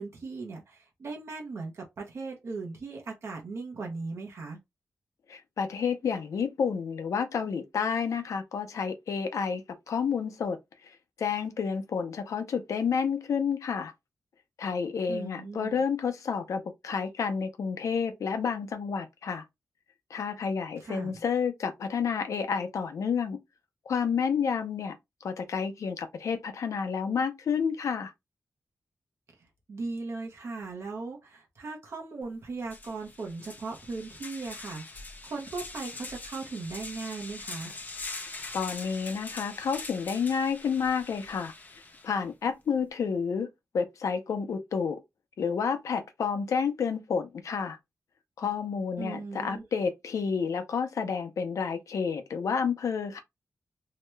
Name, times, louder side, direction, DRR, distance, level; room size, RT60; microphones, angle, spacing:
voice 1, 0.0-4.6 15.1-15.8 20.8-21.2 29.4-37.7 49.0-49.6, right 3 dB, 60° right, 0.8 m, -38 dB
voice 2, 5.3-10.6 11.2-13.9 14.6-19.4 20.1-23.4 23.9-24.9 25.2-28.1 38.5-41.5 42.0-43.5 43.7-45.0 45.4-47.8 48.4-53.2, left 6 dB, 85° left, 0.6 m, -30 dB
sound 1, 32.2-32.3 32.7-42.2, left 3 dB, 35° left, 0.6 m, -43 dB
2.8 x 2.2 x 3.1 m
wide cardioid pair, 125°, 5 cm